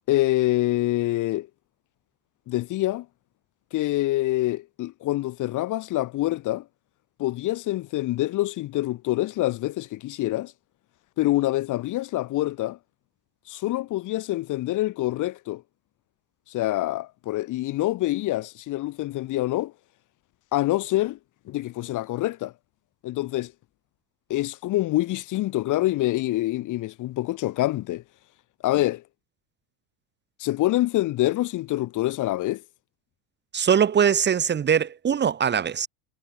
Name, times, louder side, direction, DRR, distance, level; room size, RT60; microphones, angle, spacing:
voice 1, 0.1-1.5 2.5-3.1 3.7-6.6 7.2-10.5 11.2-12.8 13.5-15.6 16.5-19.7 20.5-21.2 21.5-22.5 23.0-23.5 24.3-28.0 28.6-29.0 30.4-32.6, left 16 dB, 50° left, 2.5 m, -26 dB
voice 2, 33.5-35.9, right 8 dB, 25° right, 2.4 m, -21 dB
supercardioid pair, 135°, 41 cm